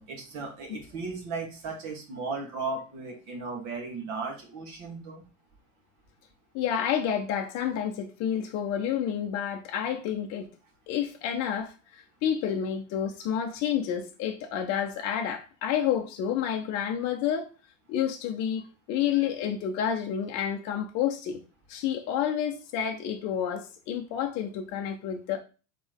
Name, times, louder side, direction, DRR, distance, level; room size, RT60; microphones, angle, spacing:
voice 1, 0.0-5.2, right 4 dB, 45° right, 1.6 m, -36 dB
voice 2, 6.5-10.5 10.9-17.5 17.9-21.4 21.7-25.4, left 9 dB, 40° left, 0.7 m, -29 dB
4.1 x 3.5 x 3.4 m
hypercardioid pair, 90°, 39 cm